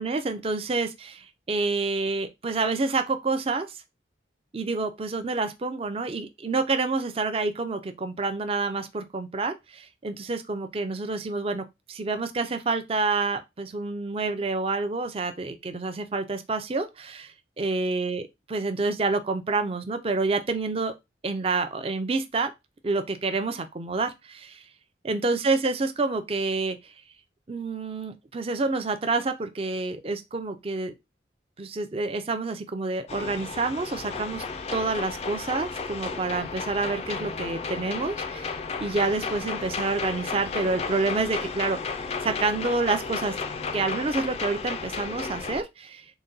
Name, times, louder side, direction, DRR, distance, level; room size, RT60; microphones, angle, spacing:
voice 1, 0.0-3.8 4.5-20.9 21.2-22.5 22.8-24.6 25.0-26.8 27.5-30.9 31.6-34.4 34.7-38.5 38.8-43.3 43.7-46.0, right 3 dB, 30° right, 0.5 m, -28 dB
sound 1, 33.1-45.6, left 4 dB, 35° left, 0.4 m, -33 dB
3.9 x 2.2 x 3.9 m
head